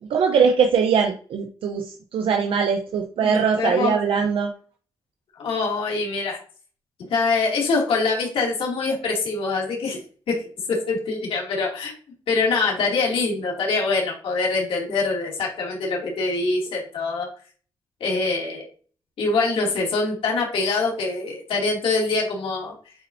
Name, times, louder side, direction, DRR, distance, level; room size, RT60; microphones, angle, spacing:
voice 1, 0.1-4.5, right 6 dB, 85° right, 4 dB, 0.7 m, -21 dB
voice 2, 3.2-4.0 5.4-6.4 7.1-10.0 10.3-11.9 12.3-17.3 18.0-18.7 19.2-22.7, left 3 dB, 85° left, -2 dB, 2.5 m, -24 dB
8.5 x 4.2 x 2.6 m, 0.42 s
cardioid pair, 80°, 9 cm